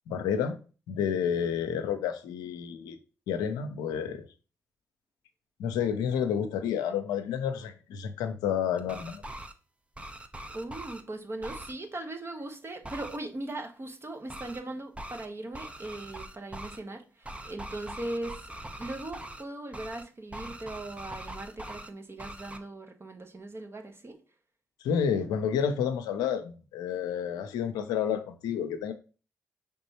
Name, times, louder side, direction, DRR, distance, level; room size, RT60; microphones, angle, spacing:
voice 1, 0.1-0.6 0.9-3.0 3.3-4.3 5.6-9.2 24.8-28.9, left 8 dB, 85° left, 0.5 m, -30 dB
sound 1, 8.8-9.5 9.9-11.0 11.4-11.7 12.8-13.2 14.3-14.6 14.9-15.3 15.5-16.8 17.2-19.4 19.7-20.0 20.3-21.9 22.2-22.6, right 1 dB, 15° right, 0.7 m, -42 dB
voice 2, 10.5-18.4 18.8-24.2, right 2 dB, 35° right, 1.1 m, -39 dB
5.2 x 3.5 x 2.9 m
hypercardioid pair, 40°, 7 cm